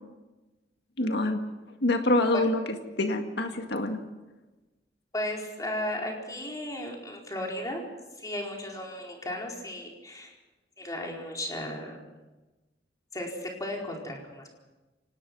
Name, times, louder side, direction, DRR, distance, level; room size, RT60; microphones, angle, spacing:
voice 1, 1.0-1.4 1.8-2.6 3.0-4.0, left 1 dB, 65° left, 5 dB, 2.0 m, -25 dB
voice 2, 5.1-7.9 8.2-10.3 10.8-11.9 13.1-14.5, left 1 dB, 20° left, 0 dB, 4.4 m, -35 dB
26.0 x 19.5 x 6.2 m, 1.1 s
head